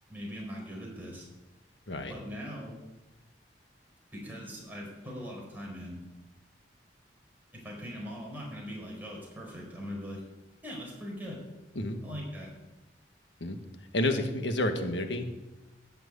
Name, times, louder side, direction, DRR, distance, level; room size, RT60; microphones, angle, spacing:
voice 1, 0.1-1.3 2.1-2.8 4.1-6.0 7.5-10.2 10.6-11.4 12.0-12.5, equal, 10° right, -3 dB, 4.7 m, -41 dB
voice 2, 13.9-15.4, left 1 dB, 80° left, 6 dB, 1.5 m, -30 dB
14.0 x 6.2 x 9.5 m, 1.1 s
head